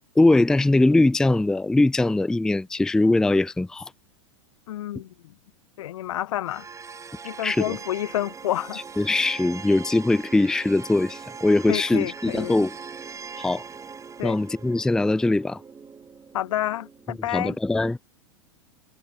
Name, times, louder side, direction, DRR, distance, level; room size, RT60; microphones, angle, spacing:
voice 1, 0.2-3.9 7.4-7.8 9.0-12.7 13.4-13.6 14.2-15.6 17.3-18.0, left 2 dB, 5° left, 0.4 m, -21 dB
voice 2, 4.7-5.3 5.8-6.7 7.2-8.8 11.7-12.6 14.2-14.4 16.3-17.6, left 13 dB, 75° left, 1.0 m, -29 dB
sound 1, 6.5-17.5, right 5 dB, 20° right, 3.5 m, -41 dB
hypercardioid pair, 105°, 17 cm